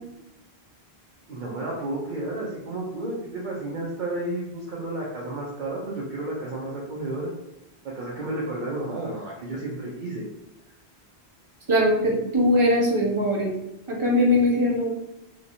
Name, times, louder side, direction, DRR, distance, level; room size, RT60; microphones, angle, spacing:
voice 1, 1.3-7.3 7.9-10.2, right 2 dB, 55° right, -4 dB, 0.7 m, -32 dB
voice 2, 11.7-13.5 13.9-14.9, left 1 dB, 30° right, -3 dB, 0.9 m, -21 dB
3.0 x 2.9 x 2.6 m, 0.86 s
omnidirectional pair, 1.1 m